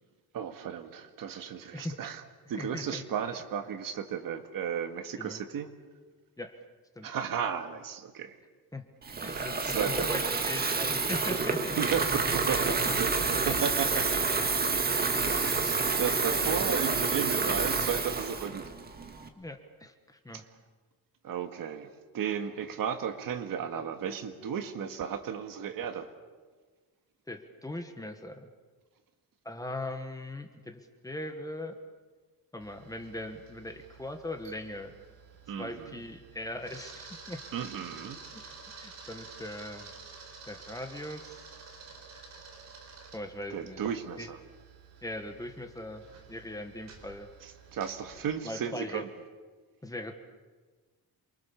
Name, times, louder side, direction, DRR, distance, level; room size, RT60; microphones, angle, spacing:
voice 1, 0.3-2.2 2.5-5.7 7.0-8.4 9.3-10.1 11.8-14.4 15.2-18.6 20.3-20.4 21.2-21.9 22.1-26.1 35.5-36.0 37.5-38.2 43.5-44.4 47.7-49.1, right 8 dB, 65° right, 7 dB, 2.0 m, -34 dB
voice 2, 2.6-3.0 5.2-5.4 6.4-6.6 6.9-7.1 8.7-11.8 12.7-12.8 13.5-13.6 16.0-16.2 17.8-17.9 19.3-20.4 27.3-28.5 29.4-31.8 32.5-34.9 35.6-37.4 38.3-39.9 40.5-41.5 43.1-43.8 44.2-44.3 45.0-47.3 48.4-49.0 49.8-50.1, left 1 dB, 10° left, 6 dB, 1.5 m, -40 dB
Water tap faucet / Fill (with liquid), 9.0-19.3, right 4 dB, 25° right, 1.8 m, -28 dB
Camera, 32.6-48.2, right 4 dB, 45° right, 4.4 m, -50 dB
28.0 x 23.5 x 7.1 m, 1.4 s
cardioid pair, 180°, 36 cm